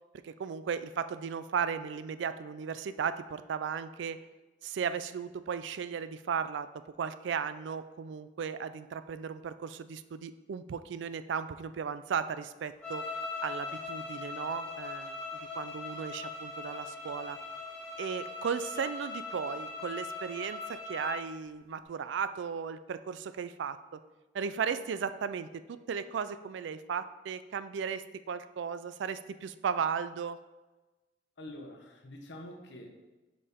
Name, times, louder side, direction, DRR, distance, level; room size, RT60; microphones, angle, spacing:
voice 1, 0.2-4.2 4.6-13.1 13.4-15.2 15.6-17.4 18.0-24.0 24.3-30.4, right 6 dB, 70° right, 13 dB, 0.3 m, -36 dB
sound 1, 12.8-21.2, left 3 dB, 5° left, 1.8 m, -40 dB
voice 2, 31.4-33.0, left 1 dB, 65° left, 3 dB, 0.9 m, -46 dB
6.8 x 5.3 x 3.6 m, 1.1 s
head